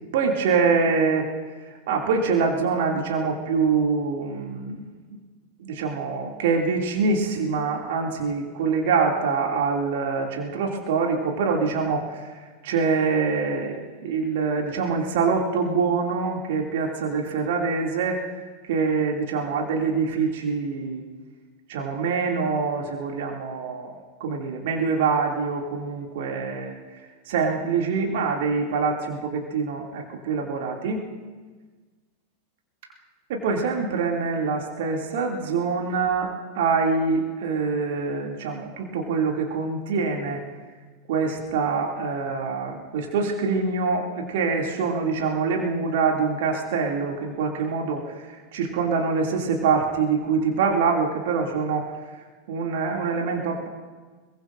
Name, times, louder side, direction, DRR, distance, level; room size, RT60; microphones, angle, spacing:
voice 1, 0.1-1.3 1.7-5.2 5.6-18.2 18.6-21.0 21.7-31.0 33.3-36.3 36.5-40.4 41.1-51.9 52.5-53.7, right 5 dB, 55° right, 0 dB, 2.5 m, -25 dB
23.5 x 22.0 x 2.6 m, 1.4 s
figure-of-eight pair, 90°, 0 cm